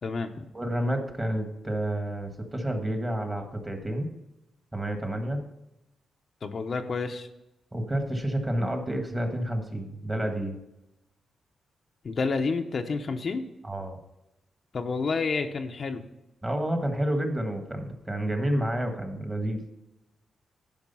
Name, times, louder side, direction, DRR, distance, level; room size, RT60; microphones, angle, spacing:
voice 1, 0.0-0.5 6.4-7.3 12.0-13.4 14.7-16.0, left 4 dB, 50° left, 5 dB, 0.7 m, -29 dB
voice 2, 0.5-4.1 4.7-5.4 7.7-10.6 13.6-14.0 16.4-19.6, right 1 dB, 15° right, 5 dB, 1.5 m, -29 dB
11.0 x 4.9 x 5.5 m, 0.92 s
cardioid pair, 100°, 0 cm